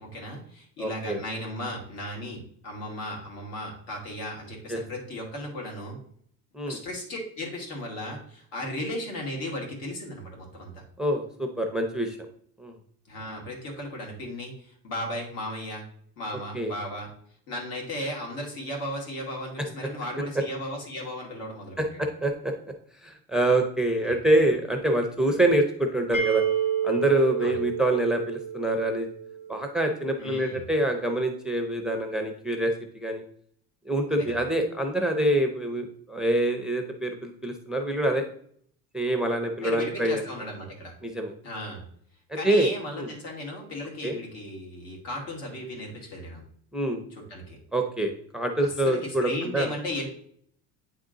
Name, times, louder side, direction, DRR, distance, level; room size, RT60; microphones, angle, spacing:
voice 1, 0.0-6.0 6.7-10.8 13.1-15.8 16.2-17.1 17.5-22.0 24.0-24.1 27.4-27.6 30.2-30.6 34.2-34.3 39.6-40.9 41.4-41.8 42.3-46.4 47.3-47.6 48.8-50.1, left 1 dB, 80° left, 0 dB, 2.5 m, -35 dB
voice 2, 0.8-1.2 4.7-4.8 6.5-6.8 11.0-12.2 12.6-12.7 16.5-16.7 20.3-20.4 22.0-22.5 23.0-26.4 26.8-29.1 29.5-33.2 33.9-38.3 38.9-40.2 41.0-41.3 42.4-42.7 43.0-43.1 44.0-44.2 46.7-47.0 47.7-49.7, right 1 dB, ahead, 4 dB, 0.4 m, -25 dB
sound 1, 26.1-29.9, right 8 dB, 25° left, 1.1 m, -29 dB
8.6 x 3.6 x 3.8 m, 0.63 s
cardioid pair, 145°, 36 cm